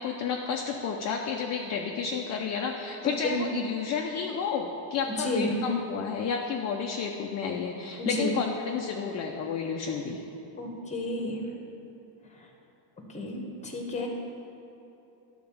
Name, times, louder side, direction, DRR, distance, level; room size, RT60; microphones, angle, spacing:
voice 1, 0.0-10.2 14.0-14.1, left 6 dB, 35° left, 1 dB, 0.5 m, -31 dB
voice 2, 5.2-5.6 8.0-8.4 10.6-11.4 13.1-14.1, left 1 dB, 15° left, 1 dB, 1.1 m, -31 dB
10.5 x 3.9 x 7.0 m, 2.9 s
cardioid pair, 145°, 49 cm